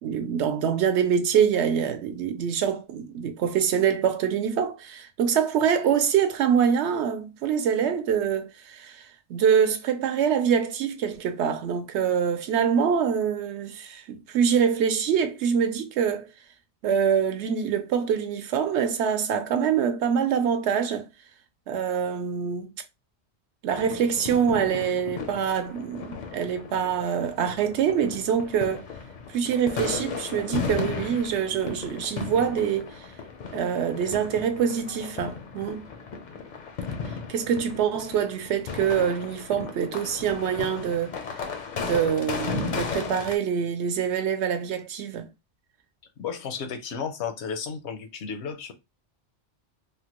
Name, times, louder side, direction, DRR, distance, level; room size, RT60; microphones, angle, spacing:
voice 1, 0.0-16.3 16.8-21.1 21.7-22.7 23.6-28.9 29.3-32.9 33.5-35.8 37.3-41.1 41.8-45.3, right 7 dB, 75° right, 0.9 m, -25 dB
sound 1, 23.7-43.4, left 5 dB, 55° left, 0.5 m, -35 dB
voice 2, 46.2-48.7, left 6 dB, 75° left, 0.9 m, -33 dB
3.3 x 2.1 x 2.9 m
omnidirectional pair, 1.2 m